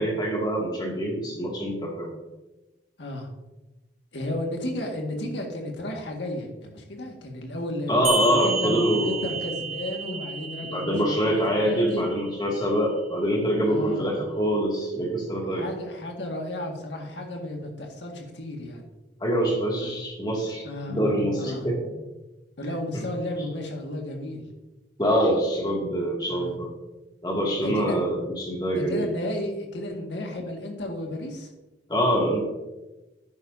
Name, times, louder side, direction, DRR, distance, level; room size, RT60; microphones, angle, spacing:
voice 1, 0.0-2.1 7.9-9.3 10.7-15.7 19.2-21.8 25.0-26.7 27.2-29.1 31.9-32.4, equal, 25° left, -2 dB, 2.3 m, -25 dB
voice 2, 3.0-3.3 4.1-7.9 8.3-12.1 13.7-14.1 15.5-18.8 19.8-19.9 20.6-21.0 21.4-21.7 22.6-24.5 26.2-26.5 27.6-28.0 28.7-31.5, left 1 dB, 75° left, 1 dB, 1.9 m, -33 dB
sound 1, 8.0-13.1, right 4 dB, 35° right, 1.1 m, -32 dB
10.5 x 9.5 x 2.7 m, 1.1 s
head